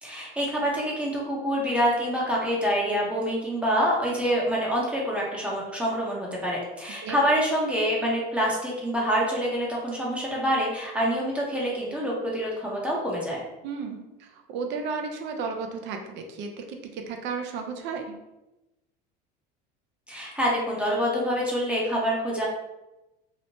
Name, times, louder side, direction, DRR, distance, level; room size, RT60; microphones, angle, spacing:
voice 1, 0.0-13.4 20.1-22.5, equal, 5° right, -4 dB, 0.7 m, -26 dB
voice 2, 13.6-18.2, right 5 dB, 60° right, 4 dB, 0.5 m, -34 dB
2.9 x 2.1 x 2.7 m, 0.98 s
supercardioid pair, 115°, 20 cm